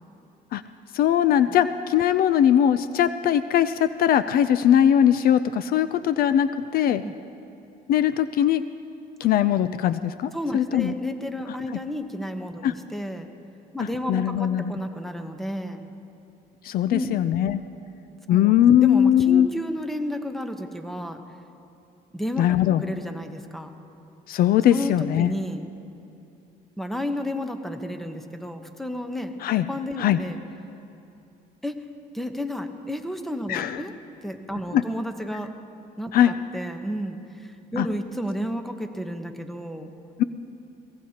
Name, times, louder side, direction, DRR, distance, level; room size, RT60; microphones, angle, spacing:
voice 1, 0.9-7.0 7.9-8.6 9.2-10.9 12.6-12.7 13.8-14.7 16.6-17.6 18.3-19.5 22.4-22.8 24.3-25.3 29.4-29.7 30.0-30.2 33.5-33.8 34.7-34.8 36.1-36.3 37.8-37.9 40.2-40.3, left 10 dB, 60° left, 13 dB, 0.4 m, -20 dB
voice 2, 6.8-7.1 10.3-13.4 13.7-15.8 16.9-17.2 18.3-18.6 18.8-21.2 22.1-22.5 22.8-23.7 24.7-25.7 26.8-29.4 29.7-30.4 31.6-31.8 32.1-33.9 34.2-35.5 36.0-39.9, equal, ahead, 6 dB, 0.9 m, -32 dB
22.5 x 17.0 x 2.9 m, 2.7 s
cardioid pair, 110°, 17 cm